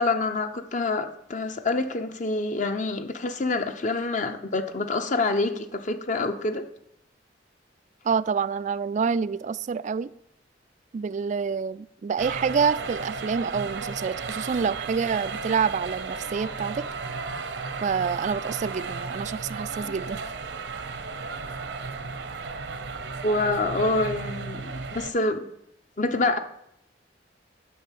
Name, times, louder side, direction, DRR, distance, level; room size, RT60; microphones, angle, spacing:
voice 1, 0.0-6.6 23.2-25.4 26.0-26.4, left 3 dB, 45° left, 0.8 m, -26 dB
voice 2, 8.0-10.1 10.9-16.8 17.8-20.2, right 6 dB, 40° right, 0.3 m, -27 dB
sound 1, 12.2-25.1, right 4 dB, 75° right, 0.8 m, -34 dB
8.5 x 6.2 x 7.5 m
head